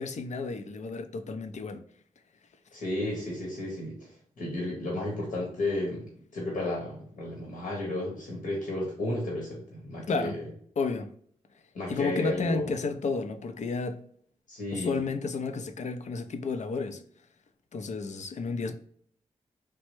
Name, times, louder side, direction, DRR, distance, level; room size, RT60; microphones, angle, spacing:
voice 1, 0.0-1.8 10.1-10.4 10.8-11.1 11.9-14.0 14.7-17.0 17.7-18.7, left 4 dB, 60° left, 0.5 m, -31 dB
voice 2, 2.7-10.4 11.7-12.7 14.5-15.0, left 1 dB, 75° left, 1.0 m, -33 dB
3.1 x 2.1 x 3.0 m
supercardioid pair, 40°, 14 cm